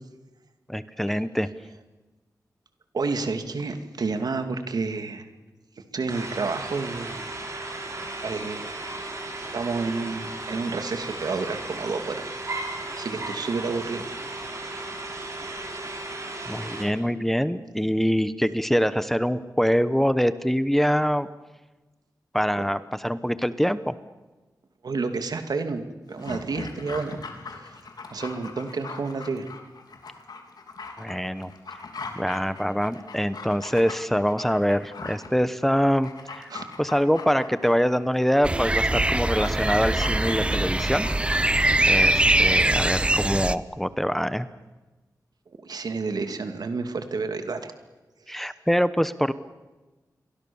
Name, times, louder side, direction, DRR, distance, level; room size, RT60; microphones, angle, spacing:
voice 1, 0.7-1.5 16.5-21.3 22.3-23.9 31.0-31.5 32.2-36.5 36.8-41.1 41.9-44.5 48.3-49.3, equal, 5° left, 13 dB, 0.9 m, -24 dB
voice 2, 2.9-5.2 5.9-7.3 7.9-8.7 9.5-14.1 24.8-25.8 26.1-27.2 27.6-27.8 28.1-29.5 36.5-36.7 45.5-47.7 48.3-48.4, right 4 dB, 75° right, 7 dB, 2.5 m, -30 dB
sound 1, 6.1-16.9, right 2 dB, 50° right, 6.4 m, -35 dB
Dog, 26.1-42.4 42.7-42.8, left 4 dB, 80° left, 3.4 m, -41 dB
sound 2, 38.4-43.5, right 1 dB, 15° right, 0.8 m, -22 dB
29.5 x 23.0 x 7.1 m, 1.2 s
wide cardioid pair, 110°, 7 cm